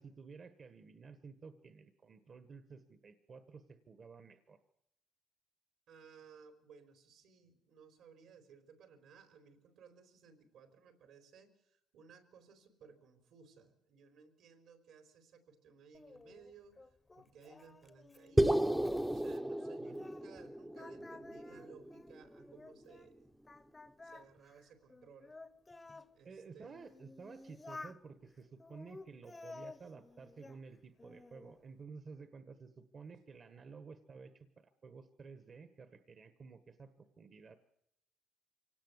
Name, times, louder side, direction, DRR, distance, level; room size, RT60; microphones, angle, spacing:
voice 1, 0.0-4.6 19.8-20.0 26.2-37.6, right 5 dB, 45° right, 9 dB, 1.5 m, -53 dB
voice 2, 5.9-11.5 11.9-16.8 17.1-18.7 19.1-23.3 24.0-25.4 26.1-26.8, right 6 dB, 75° right, 7 dB, 4.2 m, -59 dB
Singing, 15.9-20.5 20.7-23.1 23.5-26.1 26.7-28.0 28.6-30.6 31.0-31.6, left 3 dB, 20° left, 1.1 m, -53 dB
sound 1, 18.4-22.8, right 1 dB, 5° right, 0.9 m, -34 dB
25.0 x 18.0 x 8.2 m, 0.80 s
cardioid pair, 95°, 0 cm